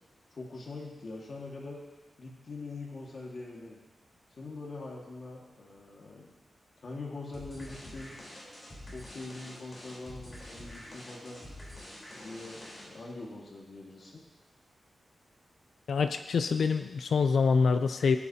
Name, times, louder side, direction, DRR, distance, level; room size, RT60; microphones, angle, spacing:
voice 1, 0.3-1.8 2.2-3.8 4.4-6.3 6.8-8.1 8.9-11.4 12.1-14.2, left 3 dB, 50° left, -2 dB, 1.7 m, -43 dB
sound 1, 7.3-13.1, left 1 dB, 25° left, 3.7 m, -47 dB
voice 2, 15.9-18.2, left 5 dB, 75° left, 8 dB, 0.4 m, -25 dB
18.5 x 8.6 x 2.8 m, 1.2 s
wide cardioid pair, 145°, 0 cm